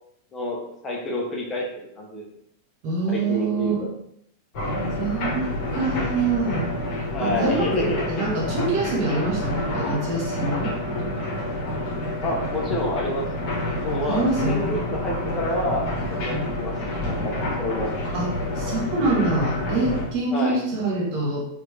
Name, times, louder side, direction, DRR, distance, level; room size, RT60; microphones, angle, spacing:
voice 1, 0.3-2.2 3.1-3.9 7.1-8.0 12.2-13.6 13.8-16.7 17.0-17.9 20.3-20.6, left 1 dB, 20° left, -2 dB, 0.9 m, -28 dB
voice 2, 2.8-3.9 5.0-6.7 7.2-10.8 11.1-11.3 14.1-14.8 16.2-16.5 18.1-21.4, right 2 dB, 40° right, -3 dB, 1.4 m, -25 dB
sound 1, 4.5-20.1, left 1 dB, 40° left, 1.3 m, -28 dB
4.6 x 2.6 x 3.3 m, 0.75 s
figure-of-eight pair, 90°, 0 cm